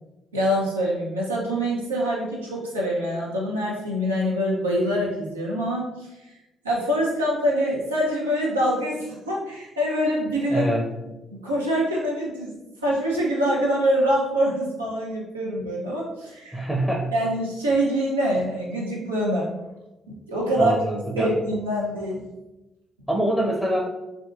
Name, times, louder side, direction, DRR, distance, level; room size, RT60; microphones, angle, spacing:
voice 1, 0.3-6.3 6.6-10.7 11.3-12.5 12.8-16.6 17.1-19.5 20.3-20.7 21.2-22.2, equal, 85° right, -4 dB, 0.6 m, -25 dB
voice 2, 10.5-10.9 16.5-17.1 20.6-21.3 23.1-23.8, right 1 dB, ahead, -2 dB, 0.6 m, -24 dB
3.5 x 2.5 x 2.4 m, 1.0 s
figure-of-eight pair, 40°, 0 cm